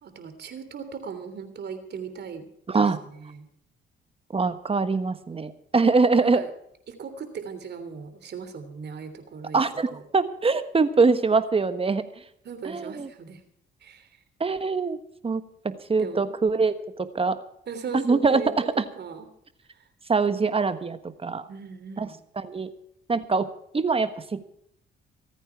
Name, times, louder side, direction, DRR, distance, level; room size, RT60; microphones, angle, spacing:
voice 1, 0.0-2.4 2.7-3.5 6.2-6.5 6.9-9.6 9.9-10.0 12.4-13.4 13.8-14.1 16.0-16.3 17.7-19.3 19.7-19.8 21.5-22.2, right 6 dB, 55° right, 9 dB, 3.2 m, -38 dB
voice 2, 2.7-3.0 4.3-6.4 9.5-12.0 12.6-13.1 14.4-15.0 15.2-16.7 17.0-17.4 17.9-18.4 18.8-18.9 20.1-21.5 22.0-22.1 22.4-22.7 23.1-23.5 23.7-24.5, right 4 dB, 30° right, 11 dB, 1.3 m, -23 dB
26.0 x 9.2 x 4.7 m, 0.71 s
cardioid pair, 90°, 20 cm